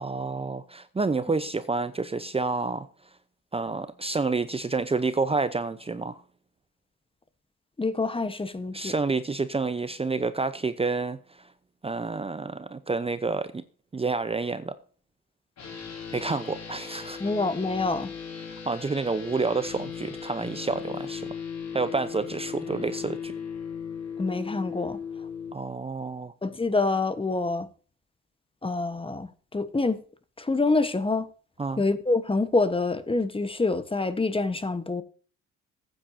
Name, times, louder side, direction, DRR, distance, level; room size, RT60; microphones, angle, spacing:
voice 1, 0.0-2.9 3.5-6.2 8.7-11.2 11.8-13.6 13.9-14.7 16.1-17.2 18.7-21.3 21.7-23.3 25.5-26.3 31.6-31.8, right 3 dB, 20° right, 0.7 m, -29 dB
voice 2, 7.8-8.9 17.2-18.1 24.2-25.0 26.4-27.7 28.6-30.0 30.4-31.3 31.8-35.0, left 3 dB, 20° left, 1.1 m, -26 dB
sound 1, 15.6-25.5, left 7 dB, 60° left, 5.2 m, -37 dB
14.5 x 9.0 x 2.7 m
cardioid pair, 90°, 30 cm